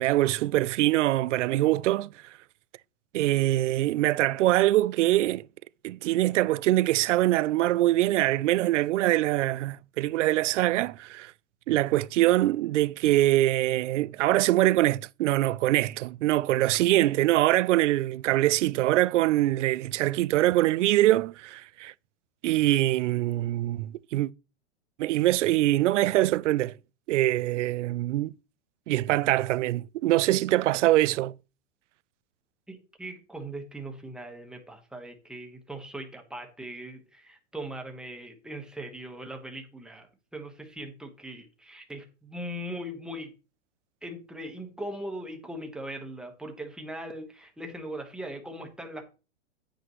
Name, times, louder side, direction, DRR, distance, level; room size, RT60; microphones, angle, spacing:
voice 1, 0.0-2.1 3.1-5.4 5.8-11.3 11.7-21.9 22.4-24.3 25.0-26.7 27.1-28.3 28.9-31.3, right 15 dB, 75° right, 0.5 m, -23 dB
voice 2, 32.7-43.3 44.0-49.0, right 1 dB, ahead, 1.3 m, -40 dB
9.7 x 8.1 x 3.1 m
supercardioid pair, 150°, 37 cm